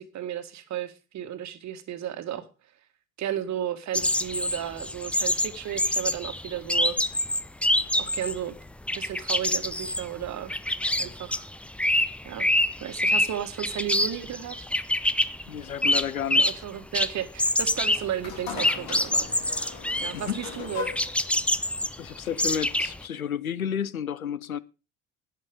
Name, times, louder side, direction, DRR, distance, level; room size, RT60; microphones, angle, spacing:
voice 1, 0.0-2.4 3.2-7.0 8.0-8.5 8.9-10.5 11.0-11.5 12.2-12.5 12.8-14.7 16.4-19.3 20.0-20.9, right 11 dB, 40° right, 1.7 m, -33 dB
sound 1, 3.9-8.4 8.7-16.7 16.9-23.0, left 1 dB, 5° left, 0.5 m, -26 dB
voice 2, 15.5-16.5 20.1-20.4 22.0-24.6, left 8 dB, 90° left, 0.6 m, -31 dB
sound 2, 17.7-23.0, left 6 dB, 60° left, 2.9 m, -40 dB
11.0 x 9.1 x 5.2 m
figure-of-eight pair, 60°, 41 cm